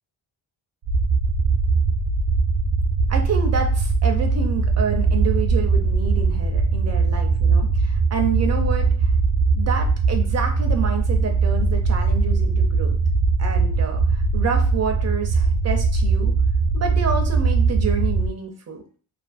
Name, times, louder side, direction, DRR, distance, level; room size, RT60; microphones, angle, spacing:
sound 1, 0.9-18.3, right 4 dB, 85° right, 0.6 m, -20 dB
voice 1, 3.1-9.1 9.5-13.0 13.4-16.3 16.7-18.8, right 6 dB, 35° right, 3 dB, 0.4 m, -28 dB
2.5 x 2.4 x 2.4 m, 0.40 s
wide cardioid pair, 135°, 50 cm